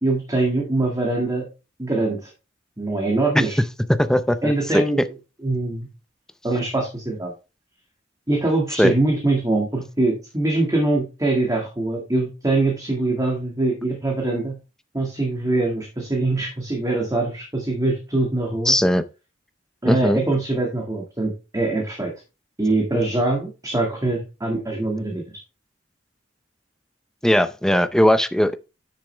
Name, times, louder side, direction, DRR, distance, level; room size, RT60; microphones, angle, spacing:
voice 1, 0.0-1.5 1.8-2.3 2.8-3.6 4.4-5.0 5.4-5.9 6.4-7.3 8.3-14.6 14.9-18.8 19.8-22.1 22.6-25.2, right 2 dB, 20° right, 1.9 m, -23 dB
voice 2, 4.0-4.8 8.8-8.9 18.7-19.0 19.9-20.2 27.2-28.6, equal, 5° left, 0.5 m, -19 dB
10.0 x 6.4 x 3.3 m
head